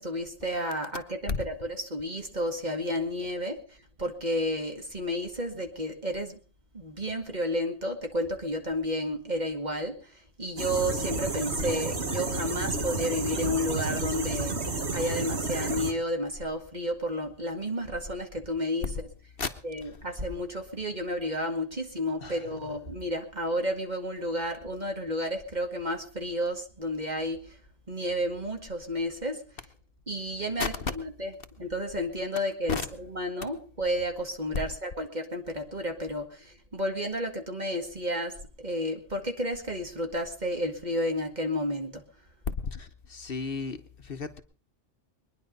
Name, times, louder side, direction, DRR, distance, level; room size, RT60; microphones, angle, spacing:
voice 1, 0.0-6.4 6.7-14.5 14.9-18.9 19.6-27.6 27.9-29.4 30.1-31.3 31.6-42.0, equal, 40° right, 4 dB, 2.2 m, -31 dB
sound 1, 10.6-15.9, right 3 dB, 70° right, 2.0 m, -31 dB
voice 2, 22.2-22.7 30.6-30.9 32.7-32.8 42.5-44.4, left 5 dB, 55° left, 9 dB, 1.2 m, -33 dB
22.5 x 10.5 x 5.3 m, 0.41 s
omnidirectional pair, 1.2 m